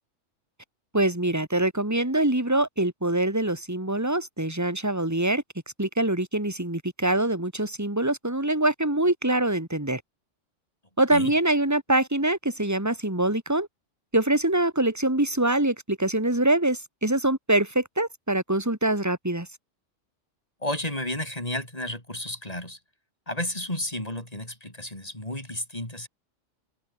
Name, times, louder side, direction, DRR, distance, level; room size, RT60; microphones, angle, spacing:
voice 1, 0.9-5.4 5.8-10.0 11.0-13.7 14.1-19.5, right 1 dB, 15° right, 3.2 m, -24 dB
voice 2, 20.6-22.8 23.3-26.1, left 1 dB, 30° left, 5.5 m, -32 dB
omnidirectional pair, 1.3 m